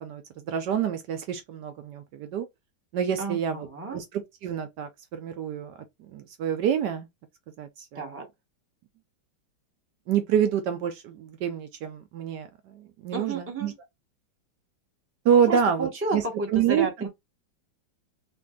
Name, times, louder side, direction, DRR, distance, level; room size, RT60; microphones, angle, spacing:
voice 1, 0.0-2.5 2.9-3.7 3.9-4.0 4.4-7.1 7.6-8.2 10.1-13.7 15.2-16.2 16.5-16.9, right 8 dB, 75° right, 1.1 m, -27 dB
voice 2, 3.2-4.0 7.9-8.3 13.1-13.7 15.3-17.1, right 3 dB, 15° right, 0.4 m, -32 dB
3.2 x 2.6 x 3.5 m
omnidirectional pair, 2.1 m